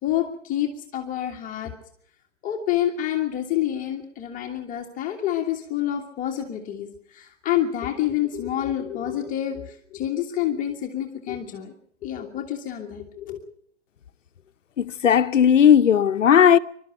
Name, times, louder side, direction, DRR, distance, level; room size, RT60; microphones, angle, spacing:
voice 1, 0.0-1.7 2.4-11.7 12.0-13.4, left 11 dB, 20° left, 1.8 m, -28 dB
voice 2, 14.8-16.6, left 8 dB, 85° left, 0.9 m, -16 dB
23.0 x 12.5 x 9.0 m
hypercardioid pair, 135°, 36 cm